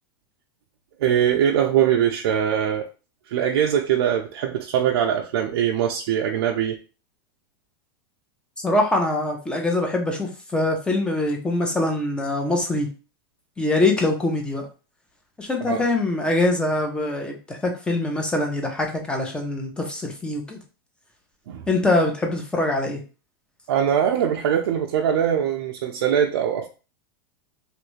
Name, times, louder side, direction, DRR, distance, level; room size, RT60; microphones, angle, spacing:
voice 1, 1.0-2.9 3.3-6.8 15.7-15.8 21.5-21.6 23.7-26.7, right 9 dB, 85° right, 0.4 m, -22 dB
voice 2, 8.6-12.9 13.6-14.7 15.4-20.6 21.7-23.0, left 2 dB, 5° left, 0.6 m, -23 dB
3.1 x 2.4 x 3.1 m
supercardioid pair, 150°, 13 cm